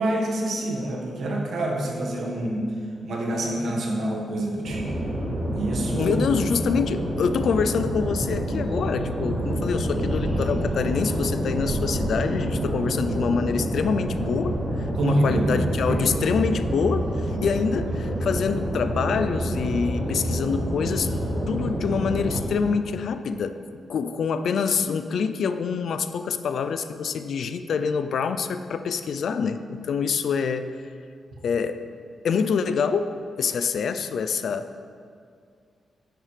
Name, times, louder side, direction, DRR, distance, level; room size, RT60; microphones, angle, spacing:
voice 1, 0.0-2.6 3.0-4.9 5.5-6.1 15.0-15.6 15.9-16.0, right 1 dB, 65° right, -1 dB, 1.5 m, -26 dB
sound 1, 4.6-22.4, right 1 dB, 35° right, 2.3 m, -27 dB
voice 2, 6.0-14.6 15.0-21.1 21.5-23.6 23.9-30.7 31.4-31.8 32.2-33.1 33.4-34.7, left 6 dB, 65° left, 10 dB, 0.4 m, -26 dB
9.6 x 7.9 x 3.3 m, 2.2 s
wide cardioid pair, 140°, 0 cm